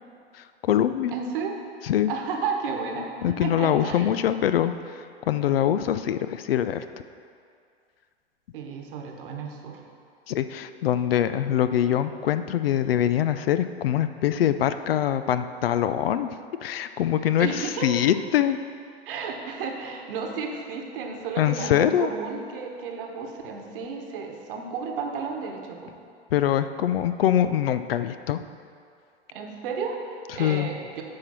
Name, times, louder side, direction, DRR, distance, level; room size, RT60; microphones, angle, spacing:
voice 1, 0.3-1.1 1.8-2.1 3.2-6.8 10.3-16.3 16.6-18.6 21.4-22.1 26.3-28.4 30.3-30.7, left 10 dB, 65° left, 11 dB, 0.5 m, -24 dB
voice 2, 1.1-1.6 2.1-4.2 8.5-9.8 17.4-18.0 19.1-25.9 29.3-31.0, right 5 dB, 55° right, 3 dB, 1.2 m, -33 dB
9.6 x 4.4 x 6.0 m, 2.3 s
figure-of-eight pair, 90°, 32 cm